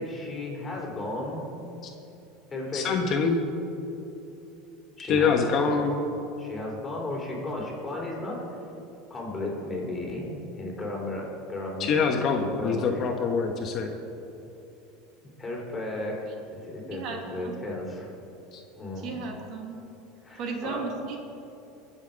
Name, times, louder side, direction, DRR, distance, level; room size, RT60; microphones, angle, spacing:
voice 1, 0.0-1.6 2.5-2.9 5.0-5.9 6.4-8.6 9.1-11.9 12.4-13.0 15.4-16.2 16.5-18.1 18.7-19.2 20.2-20.9, left 2 dB, 15° left, -2 dB, 3.7 m, -34 dB
voice 2, 2.7-3.4 5.1-6.0 11.8-13.9 18.5-18.6, left 5 dB, 40° left, 3 dB, 1.2 m, -25 dB
voice 3, 16.8-17.5 19.0-19.8 20.4-21.2, right 4 dB, 50° right, 1 dB, 2.4 m, -35 dB
21.5 x 7.3 x 5.3 m, 2.9 s
supercardioid pair, 130°, 0 cm